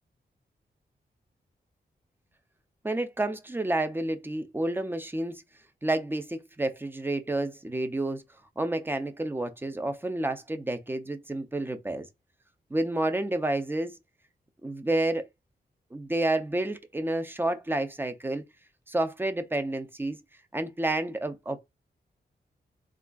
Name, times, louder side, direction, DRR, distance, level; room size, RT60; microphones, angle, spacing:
voice 1, 2.8-5.4 5.8-8.2 8.6-12.1 12.7-13.9 14.6-15.2 15.9-18.4 18.9-20.2 20.5-21.6, right 1 dB, 10° right, 0.5 m, -29 dB
3.6 x 2.4 x 2.2 m
wide cardioid pair, 100°, 18 cm